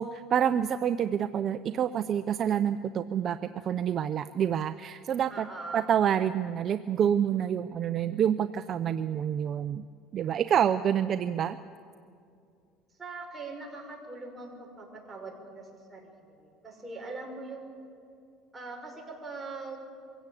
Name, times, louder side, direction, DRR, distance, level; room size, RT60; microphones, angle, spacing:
voice 1, 0.0-5.5 5.7-9.8 10.1-11.6, right 9 dB, 40° right, 12 dB, 0.6 m, -27 dB
voice 2, 5.3-5.9 13.0-17.8 18.5-19.8, right 3 dB, 15° right, 0 dB, 5.1 m, -42 dB
23.5 x 16.5 x 8.5 m, 2.4 s
cardioid pair, 125°, 0 cm